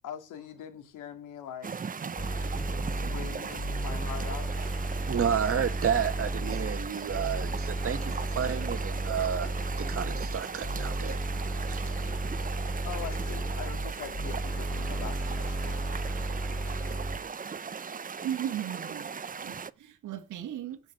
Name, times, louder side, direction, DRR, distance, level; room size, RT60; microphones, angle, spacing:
voice 1, 0.0-1.7 2.9-4.5 12.8-15.8, left 9 dB, 90° left, 2.7 m, -42 dB
sound 1, 1.6-19.7, right 6 dB, 30° right, 0.8 m, -39 dB
sound 2, 2.2-17.2, right 1 dB, ahead, 2.7 m, -33 dB
sound 3, 2.4-2.7 3.4-4.0 4.4-5.1 5.8-6.3 6.9-7.4 8.1-8.6 9.0-9.1 9.4-9.9 10.6-11.0 11.8-12.3 12.7-13.5 14.2-14.7 15.4-15.9 16.6-17.0, left 4 dB, 50° left, 4.0 m, -55 dB
voice 2, 5.1-9.5 9.8-11.2 11.7-11.8, right 8 dB, 45° right, 2.0 m, -31 dB
voice 3, 18.2-19.1 19.4-20.8, right 11 dB, 80° right, 1.8 m, -36 dB
17.0 x 6.4 x 8.0 m
cardioid pair, 90°, 30 cm